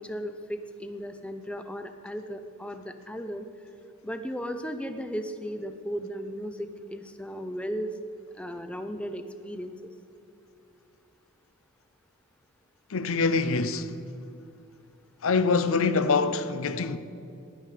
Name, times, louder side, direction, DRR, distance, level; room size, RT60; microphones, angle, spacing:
voice 1, 0.0-3.5 4.0-7.9 8.3-9.9, equal, 5° left, 0.5 m, -36 dB
voice 2, 12.9-13.9 15.2-17.0, left 4 dB, 70° left, 0.6 m, -25 dB
15.5 x 11.0 x 4.9 m
head